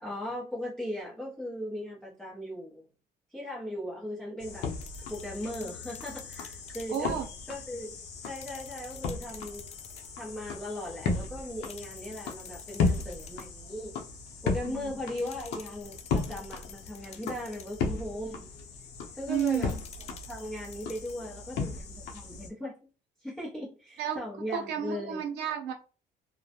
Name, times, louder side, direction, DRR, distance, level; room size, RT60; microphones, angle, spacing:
voice 1, 0.0-2.8 3.3-4.7 5.1-7.2 7.5-7.9 8.2-9.7 10.2-14.0 14.4-18.5 19.1-19.7 20.3-22.8 23.2-25.2, left 1 dB, 5° left, 0.8 m, -38 dB
sound 1, 4.4-22.5, left 4 dB, 80° left, 0.6 m, -36 dB
sound 2, 4.8-7.1 8.2-10.2 11.6-13.6 15.2-17.9 19.3-21.3, left 7 dB, 40° left, 0.4 m, -51 dB
voice 2, 6.9-7.2 14.6-14.9 19.3-19.8 24.0-24.2 24.5-25.7, right 9 dB, 85° right, 0.6 m, -31 dB
2.2 x 2.1 x 2.8 m
cardioid pair, 110°, 17 cm